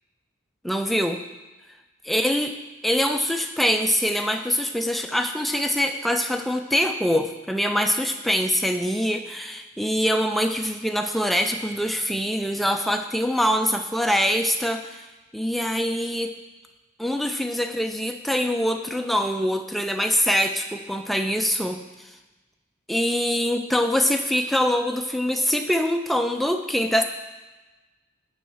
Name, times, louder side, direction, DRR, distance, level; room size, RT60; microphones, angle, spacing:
voice 1, 0.6-1.2 2.1-2.6 2.8-15.0 15.3-16.3 17.0-21.8 22.9-27.0, equal, ahead, 5 dB, 0.4 m, -24 dB
7.0 x 5.6 x 4.8 m, 1.2 s
head